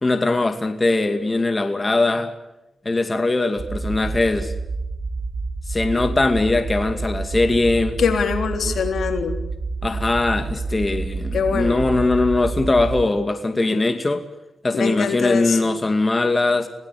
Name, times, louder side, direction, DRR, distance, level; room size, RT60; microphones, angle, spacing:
voice 1, 0.0-2.3 2.9-4.5 5.7-8.0 8.7-8.8 9.8-14.2 14.6-16.7, left 2 dB, 30° left, 7 dB, 2.3 m, -21 dB
sound 1, 3.6-13.1, right 3 dB, 45° right, 2.9 m, -28 dB
voice 2, 8.0-9.4 11.3-11.8 14.7-15.6, left 6 dB, 70° left, 6 dB, 3.6 m, -23 dB
27.0 x 18.0 x 8.6 m, 0.96 s
cardioid pair, 60°, 0 cm